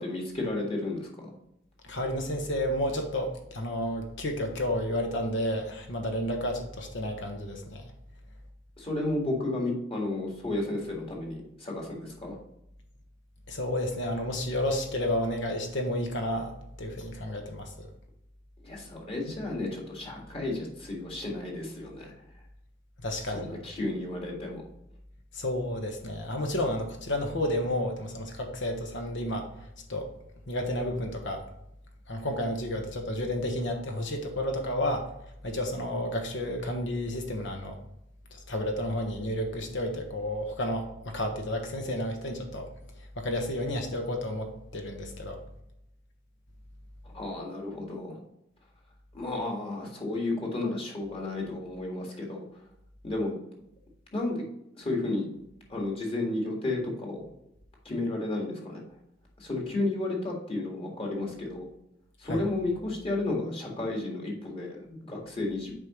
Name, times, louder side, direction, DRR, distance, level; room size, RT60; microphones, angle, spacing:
voice 1, 0.0-1.3 8.8-12.4 18.6-22.1 23.3-24.6 47.0-48.2 49.1-52.4 53.0-53.3 54.1-54.5 54.7-55.3 55.7-57.2 57.9-58.8 59.4-61.7 62.2-65.7, left 2 dB, 30° left, -1 dB, 1.8 m, -32 dB
voice 2, 1.8-7.9 13.5-17.9 23.0-23.5 25.3-30.1 30.5-31.5 32.1-35.1 35.4-37.8 38.3-42.7 43.0-45.4 62.2-62.4, left 1 dB, 65° left, 4 dB, 1.3 m, -31 dB
7.5 x 5.1 x 3.1 m, 0.80 s
head